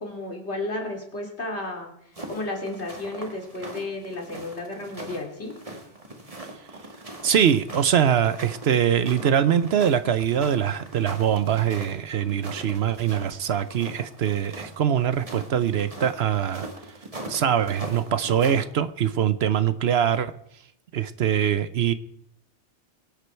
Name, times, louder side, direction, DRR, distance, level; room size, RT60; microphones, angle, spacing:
voice 1, 0.0-1.9 2.3-5.5 14.5-14.7, left 2 dB, 65° left, 1 dB, 3.0 m, -33 dB
sound 1, 2.1-18.6, right 1 dB, 30° right, 1.9 m, -41 dB
voice 2, 7.2-16.7 17.3-20.3 20.9-21.9, right 9 dB, 65° right, 13 dB, 0.9 m, -23 dB
23.5 x 8.2 x 4.5 m, 0.73 s
omnidirectional pair, 1.2 m